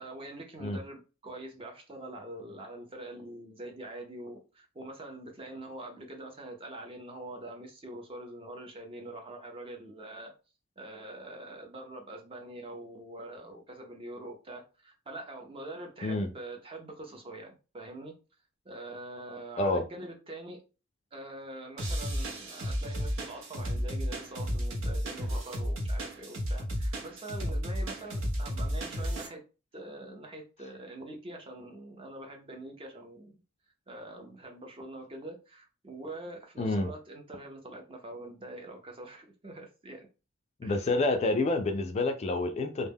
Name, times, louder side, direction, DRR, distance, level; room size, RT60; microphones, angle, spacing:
voice 1, 0.0-10.3 10.8-18.2 18.6-20.6 21.1-29.4 29.7-33.4 33.9-40.1 40.6-40.8, right 1 dB, 25° right, 0.5 m, -44 dB
sound 1, 21.8-29.3, equal, 75° right, 0.7 m, -33 dB
voice 2, 36.6-36.9 40.6-42.9, left 2 dB, 35° left, 0.3 m, -28 dB
2.1 x 2.0 x 3.4 m
head